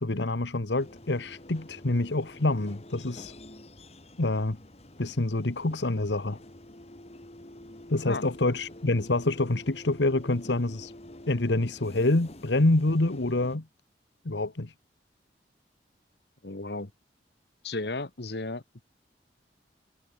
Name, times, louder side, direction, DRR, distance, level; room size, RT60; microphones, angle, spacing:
voice 1, 0.0-3.3 4.2-4.6 5.0-6.4 7.9-10.9 11.3-13.6 14.2-14.7, left 2 dB, 90° left, 1.4 m, -26 dB
sound 1, 0.8-13.6, left 1 dB, 35° left, 2.3 m, -48 dB
voice 2, 16.4-16.9 17.6-18.6, left 2 dB, 70° left, 1.6 m, -34 dB
head